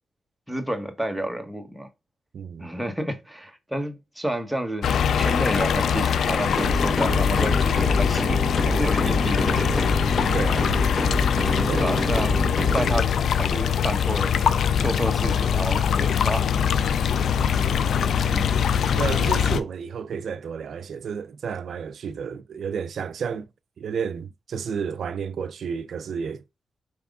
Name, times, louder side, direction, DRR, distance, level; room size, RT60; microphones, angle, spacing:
voice 1, 0.5-1.9 2.6-9.7 11.8-16.5 17.6-17.7 18.3-18.4, right 1 dB, 5° right, 1.3 m, -30 dB
voice 2, 2.3-2.7 10.3-10.7 11.7-11.9 19.0-23.5 23.8-26.4, right 6 dB, 75° right, 0.4 m, -31 dB
sound 1, 4.8-19.6, left 7 dB, 80° left, 0.4 m, -23 dB
sound 2, 6.6-13.0, left 1 dB, 20° left, 1.2 m, -26 dB
4.8 x 3.4 x 2.4 m
cardioid pair, 55°, 0 cm